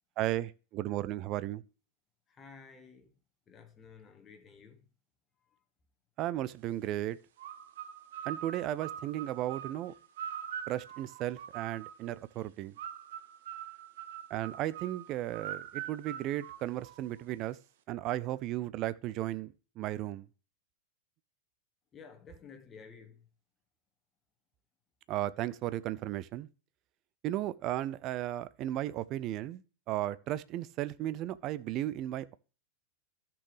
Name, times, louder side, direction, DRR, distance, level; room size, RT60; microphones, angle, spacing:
voice 1, 0.2-1.6 6.2-7.2 8.3-9.9 10.7-12.7 14.3-17.6 17.9-20.3 25.1-26.5 27.2-29.6 29.9-32.4, right 14 dB, 35° right, 0.5 m, -35 dB
voice 2, 2.3-3.1 3.5-4.9 21.9-23.3, left 5 dB, 20° left, 1.3 m, -53 dB
sound 1, 7.4-12.1 12.8-17.2, right 10 dB, 55° right, 0.9 m, -43 dB
13.5 x 6.1 x 3.2 m
figure-of-eight pair, 90°, 0 cm